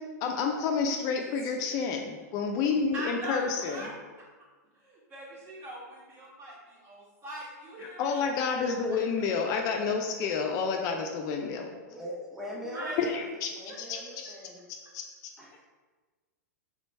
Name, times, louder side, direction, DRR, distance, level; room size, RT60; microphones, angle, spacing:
voice 1, 0.0-3.8 8.0-11.7 13.0-13.5 13.9-14.3 14.9-15.0, left 5 dB, 40° left, 3 dB, 0.4 m, -29 dB
voice 2, 1.2-1.5 2.9-4.3 4.7-8.3 8.7-8.8 9.5-9.6 12.6-13.1 13.7-14.3, right 1 dB, 30° right, -4 dB, 1.3 m, -42 dB
voice 3, 11.9-13.1 13.5-14.7 15.4-15.6, equal, 5° right, -5 dB, 0.7 m, -41 dB
3.3 x 3.0 x 3.2 m, 1.3 s
hypercardioid pair, 110°, 9 cm